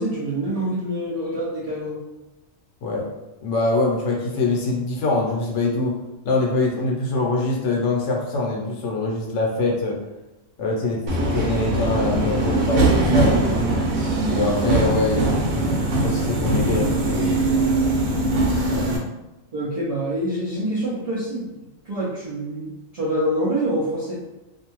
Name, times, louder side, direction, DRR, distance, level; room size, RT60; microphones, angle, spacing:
voice 1, 0.0-2.0 19.5-21.5 21.8-24.2, right 1 dB, 50° right, -8 dB, 0.4 m, -26 dB
voice 2, 3.4-6.0 6.2-10.0 10.6-13.6 14.3-17.4 18.7-18.8, left 3 dB, 65° left, -2 dB, 0.9 m, -24 dB
Subway metro underground, 11.1-19.0, right 2 dB, 85° right, 1.0 m, -21 dB
2.5 x 2.2 x 2.9 m, 1.0 s
omnidirectional pair, 1.4 m